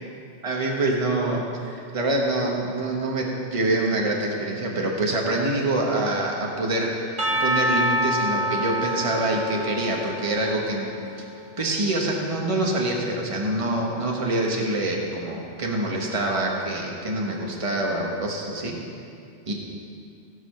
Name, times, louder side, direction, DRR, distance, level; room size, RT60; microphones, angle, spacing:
voice 1, 0.4-11.2 11.6-18.8 19.5-19.6, right 2 dB, 30° right, -1 dB, 1.3 m, -26 dB
Percussion / Church bell, 7.2-11.3, equal, 45° right, 1.2 m, -26 dB
16.5 x 5.6 x 5.6 m, 2.5 s
omnidirectional pair, 1.2 m